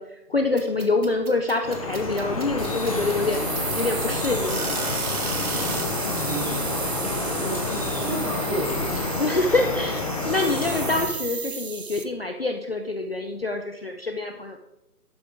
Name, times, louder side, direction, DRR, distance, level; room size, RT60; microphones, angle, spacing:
voice 1, 0.0-3.4 3.8-4.9 7.5-7.6 9.2-14.6, left 2 dB, 40° left, 5 dB, 0.5 m, -26 dB
sound 1, 0.6-5.8, right 4 dB, 65° right, 1.8 m, -33 dB
Drip, 1.6-11.0, left 3 dB, 25° left, 0.9 m, -29 dB
sound 2, 2.6-12.0, right 5 dB, 40° right, 0.8 m, -34 dB
voice 2, 5.6-9.0, right 1 dB, 10° right, -6 dB, 2.2 m, -33 dB
11.5 x 7.7 x 3.5 m, 0.93 s
figure-of-eight pair, 160°, 47 cm